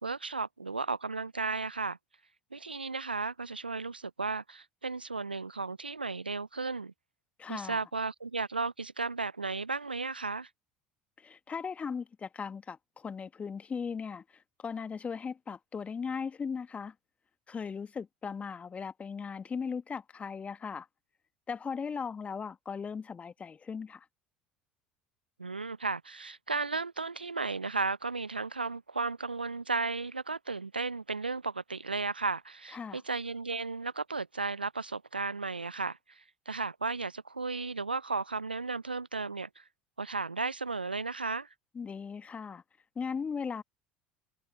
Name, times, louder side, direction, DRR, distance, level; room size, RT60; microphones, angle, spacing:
voice 1, 0.0-2.0 2.5-6.9 7.5-10.5 25.4-39.6 40.0-41.5, right 4 dB, 90° right, 0.7 m, -34 dB
voice 2, 7.4-7.8 11.2-16.9 17.5-20.9 21.5-24.1 32.7-33.0 41.7-42.6 43.0-43.6, left 6 dB, 25° left, 1.8 m, -38 dB
figure-of-eight pair, 70°, 5 cm